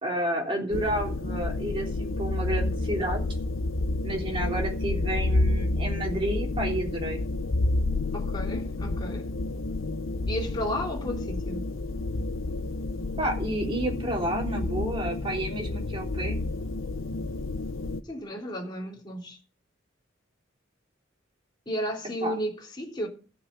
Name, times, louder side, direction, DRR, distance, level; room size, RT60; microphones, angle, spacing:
voice 1, 0.0-3.2 4.0-7.2 13.2-16.4 22.2-22.3, right 1 dB, 25° right, 3.5 m, -30 dB
sound 1, 0.7-18.0, left 2 dB, 85° left, 0.8 m, -30 dB
voice 2, 8.1-9.3 10.3-11.6 18.1-19.4 21.7-23.1, equal, 20° left, 3.2 m, -33 dB
14.0 x 6.1 x 7.9 m
head